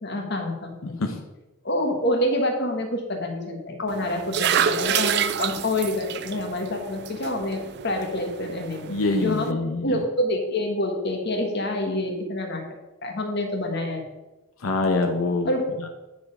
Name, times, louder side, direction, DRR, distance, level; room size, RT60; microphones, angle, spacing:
voice 1, 0.0-0.9 1.6-9.6 9.8-12.6 13.0-14.1 15.4-15.8, left 1 dB, 55° left, 3 dB, 1.4 m, -27 dB
voice 2, 0.8-1.2 8.9-10.0 14.6-15.5 15.8-15.9, left 3 dB, 90° left, 4 dB, 0.7 m, -25 dB
sound 1, 3.9-9.5, right 8 dB, 55° right, 0.4 m, -28 dB
9.3 x 4.4 x 5.3 m, 1.1 s
head